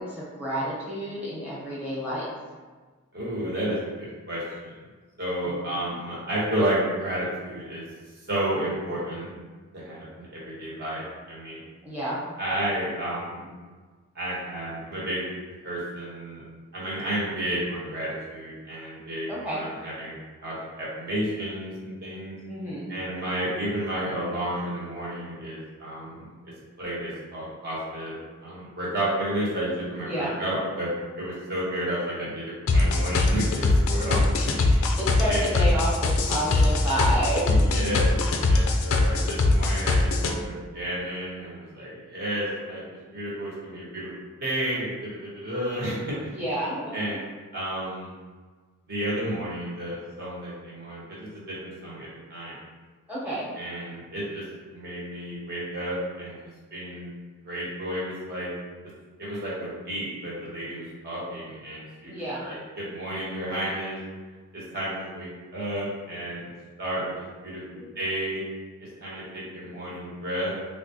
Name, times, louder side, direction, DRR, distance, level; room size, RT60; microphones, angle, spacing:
voice 1, 0.0-2.2 5.4-5.9 11.8-12.2 19.3-19.6 22.5-22.9 30.0-30.4 34.0-34.1 34.6-38.0 46.3-47.2 53.1-53.5 62.0-62.4 67.8-67.9, equal, 5° right, -8 dB, 1.0 m, -30 dB
voice 2, 3.1-4.8 5.2-7.8 8.3-9.3 9.7-11.7 12.4-13.5 14.1-15.2 15.6-16.4 16.7-20.2 20.4-22.4 22.9-26.3 26.8-34.7 35.3-35.5 37.4-38.1 38.5-46.4 46.9-47.2 47.5-48.1 48.8-52.6 53.6-54.4 54.7-56.4 56.7-57.1 57.4-58.5 59.2-64.0 64.5-66.5 66.8-68.4 68.8-70.5, right 1 dB, 45° right, -6 dB, 1.1 m, -31 dB
sound 1, 32.7-40.3, left 3 dB, 65° left, 0.4 m, -22 dB
3.7 x 2.3 x 2.8 m, 1.4 s
head